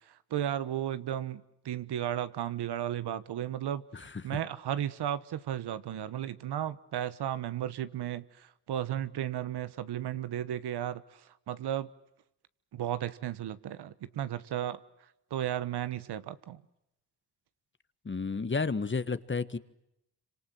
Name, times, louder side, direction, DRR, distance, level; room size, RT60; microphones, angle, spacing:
voice 1, 0.1-11.9 12.7-14.8 15.3-16.6, right 11 dB, 80° right, 14 dB, 1.3 m, -34 dB
voice 2, 18.0-19.6, left 4 dB, 30° left, 13 dB, 1.5 m, -32 dB
27.0 x 25.5 x 7.8 m, 0.85 s
cardioid pair, 65°, 39 cm